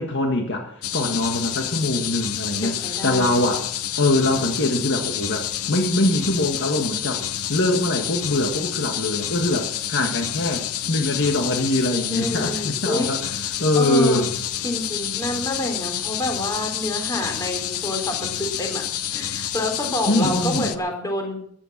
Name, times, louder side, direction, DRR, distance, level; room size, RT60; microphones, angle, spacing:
voice 1, 0.0-3.7 4.0-7.2 7.5-14.3 20.1-20.7, left 1 dB, 55° left, 3 dB, 1.7 m, -23 dB
sound 1, 0.8-20.8, left 11 dB, 80° left, 0.9 m, -28 dB
voice 2, 2.8-3.4 12.1-13.1 13.8-14.2 14.6-18.8 19.1-21.4, left 1 dB, 15° left, 3 dB, 3.8 m, -28 dB
14.5 x 10.5 x 7.3 m, 0.67 s
head